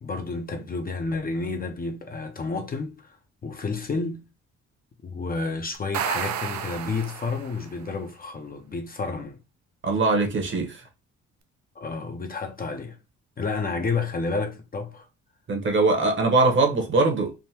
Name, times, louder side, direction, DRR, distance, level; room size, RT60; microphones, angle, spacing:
voice 1, 0.0-3.2 3.4-4.2 5.0-9.4 11.8-13.0 13.4-15.1, left 4 dB, 30° left, 0.5 m, -30 dB
sound 1, 5.7-7.7, right 8 dB, 65° right, 0.5 m, -31 dB
voice 2, 9.8-10.9 15.5-17.3, right 3 dB, 40° right, 0.9 m, -22 dB
3.5 x 2.1 x 2.7 m
cardioid pair, 90°, 30 cm